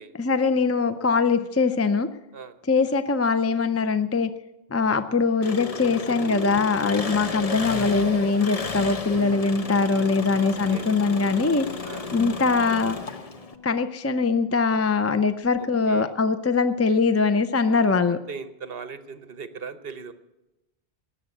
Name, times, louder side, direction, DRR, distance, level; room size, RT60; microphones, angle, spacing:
voice 1, 0.2-2.1 2.7-4.3 4.7-11.7 12.1-13.0 13.6-18.2, left 4 dB, 20° left, 11 dB, 0.4 m, -22 dB
Engine, 5.4-13.5, left 4 dB, 40° left, 0.9 m, -33 dB
sound 1, 6.2-8.1 9.1-13.9, left 1 dB, 35° right, 2.0 m, -41 dB
voice 2, 10.3-10.9 11.8-12.1 15.6-16.1 17.7-20.1, right 5 dB, 65° right, 11 dB, 1.1 m, -40 dB
18.0 x 7.2 x 9.6 m, 0.97 s
omnidirectional pair, 1.1 m